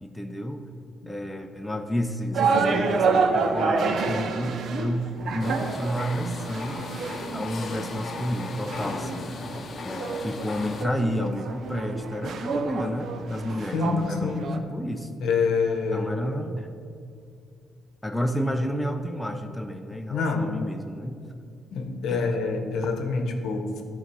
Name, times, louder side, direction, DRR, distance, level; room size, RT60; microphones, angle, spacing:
voice 1, 0.0-0.6 1.1-6.8 7.3-9.4 9.8-15.2 15.9-16.7 18.0-21.2 22.1-22.4, equal, 5° left, 5 dB, 0.5 m, -31 dB
sound 1, 2.3-14.6, right 4 dB, 65° right, 0.6 m, -28 dB
sound 2, 5.4-10.9, left 4 dB, 50° left, 0.7 m, -37 dB
voice 2, 13.7-14.5 15.2-16.1 20.1-20.5 21.7-23.8, left 4 dB, 75° left, 5 dB, 0.8 m, -26 dB
11.5 x 3.9 x 4.6 m, 2.4 s
cardioid pair, 90°, 0 cm